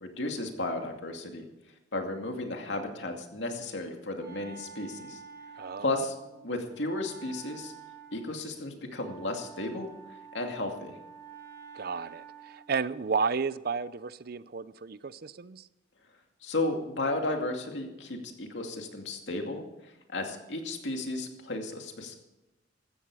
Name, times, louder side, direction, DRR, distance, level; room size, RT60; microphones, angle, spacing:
voice 1, 0.0-1.4 1.9-5.2 5.8-6.1 6.4-7.7 8.1-9.9 10.3-11.0 16.4-19.6 20.1-22.2, left 2 dB, 70° left, 2.4 m, -34 dB
Wind instrument woodwind instrument, 3.6-12.7, right 6 dB, 20° right, 3.3 m, -50 dB
voice 2, 5.6-5.9 11.7-15.7, right 5 dB, 55° right, 0.5 m, -32 dB
16.0 x 13.5 x 4.8 m
head